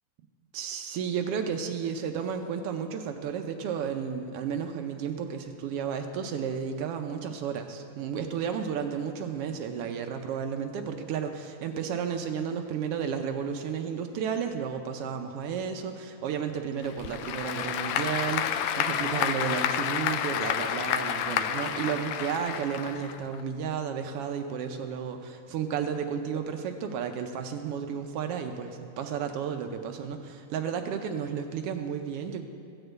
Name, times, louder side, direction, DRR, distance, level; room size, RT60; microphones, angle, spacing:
voice 1, 0.5-32.4, right 7 dB, 75° right, 5 dB, 1.4 m, -32 dB
Applause / Crowd, 16.8-23.4, left 9 dB, 75° left, 1.7 m, -30 dB
15.5 x 6.6 x 7.9 m, 2.4 s
omnidirectional pair, 3.3 m